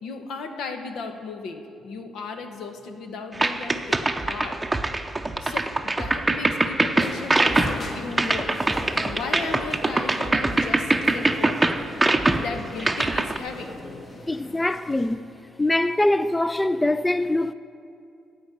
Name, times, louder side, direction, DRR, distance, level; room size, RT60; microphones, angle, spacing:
voice 1, 0.0-4.6 5.4-8.5 9.0-11.6 12.4-13.7, left 4 dB, 75° left, 1.1 m, -35 dB
sound 1, 3.4-13.4, right 2 dB, 15° right, 0.7 m, -23 dB
sound 2, 7.0-15.1, left 2 dB, 40° left, 1.6 m, -38 dB
voice 2, 14.3-15.2 15.6-17.5, left 1 dB, 15° left, 0.3 m, -23 dB
15.0 x 5.2 x 9.5 m
cardioid pair, 90°, 0 cm